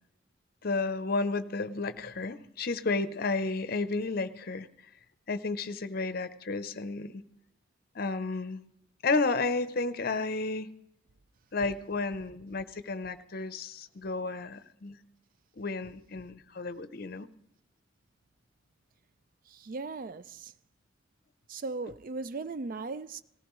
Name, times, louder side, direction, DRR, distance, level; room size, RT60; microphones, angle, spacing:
voice 1, 0.6-4.7 5.3-7.2 7.9-8.6 9.0-10.7 11.5-15.0 15.6-17.3, left 3 dB, 50° left, 0.7 m, -32 dB
voice 2, 19.5-20.5 21.5-23.2, right 3 dB, 45° right, 0.4 m, -37 dB
18.0 x 15.0 x 3.1 m
head